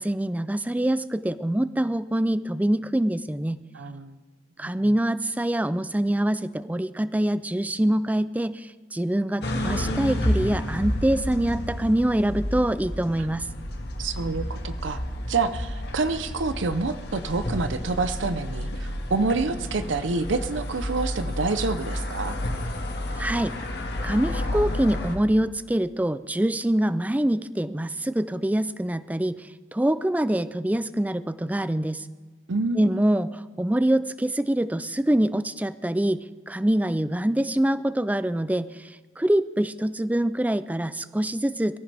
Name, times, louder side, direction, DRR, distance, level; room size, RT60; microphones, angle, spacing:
voice 1, 0.0-3.6 4.6-13.5 23.2-23.5 24.0-32.1 32.8-41.8, right 1 dB, 10° right, 14 dB, 0.4 m, -25 dB
voice 2, 3.7-4.2 4.6-4.7 14.0-15.0 15.3-22.4 32.5-33.0, right 3 dB, 85° right, 11 dB, 0.7 m, -27 dB
sound 1, 9.4-25.2, left 1 dB, 60° left, 1.9 m, -30 dB
23.0 x 14.5 x 3.4 m, 1.4 s
head